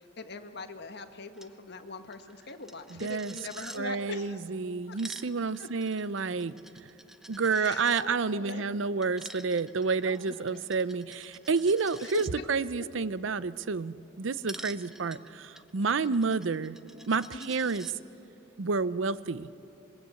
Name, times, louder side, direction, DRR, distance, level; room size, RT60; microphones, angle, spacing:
voice 1, 0.0-4.4 4.9-5.0 5.6-5.7 7.5-8.6 10.0-10.6 12.0-12.4 15.8-15.9 17.3-17.5, left 3 dB, 60° left, 7 dB, 1.5 m, -42 dB
Coin (dropping), 1.3-1.5 1.8-1.9 2.1-3.8 4.7-8.0 9.0-12.3 14.5-17.9, right 1 dB, ahead, 0.7 m, -48 dB
voice 2, 2.9-3.3 3.8-6.5 7.3-16.8 17.1-17.9 18.6-19.5, right 4 dB, 70° right, 16 dB, 0.6 m, -29 dB
27.0 x 22.0 x 8.3 m, 2.8 s
head